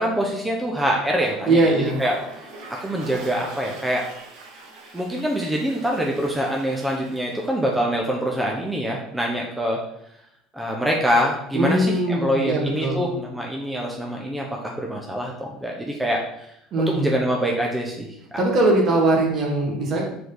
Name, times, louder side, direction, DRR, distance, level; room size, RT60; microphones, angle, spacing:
voice 1, 0.0-1.7 2.0-2.2 2.8-4.1 4.9-9.8 10.5-16.5 16.8-18.2, equal, 10° right, -1 dB, 0.9 m, -25 dB
Toilet flush, 0.9-7.7, right 3 dB, 75° right, 1.4 m, -42 dB
voice 2, 1.5-2.0 11.5-13.0 16.7-17.0 18.4-20.0, right 2 dB, 50° right, -1 dB, 1.9 m, -20 dB
4.9 x 4.7 x 4.0 m, 0.77 s
supercardioid pair, 90°, 0 cm